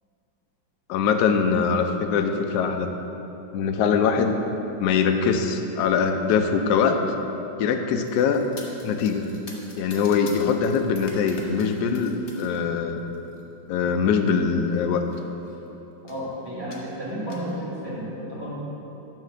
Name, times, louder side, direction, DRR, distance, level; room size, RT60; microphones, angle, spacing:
voice 1, 0.9-2.9 3.5-4.3 4.8-7.0 7.6-8.5 8.8-9.3 9.8-13.0 13.7-15.0, left 6 dB, 70° left, 5 dB, 1.0 m, -22 dB
sound 1, 8.0-12.6 13.0-13.4 14.3-14.4 14.7-14.8 15.0-15.6 16.1-16.3 16.7-17.5, left 2 dB, 45° left, 1.0 m, -45 dB
voice 2, 16.0-18.5, equal, 10° right, -8 dB, 1.8 m, -32 dB
9.1 x 3.9 x 6.6 m, 3.0 s
omnidirectional pair, 2.1 m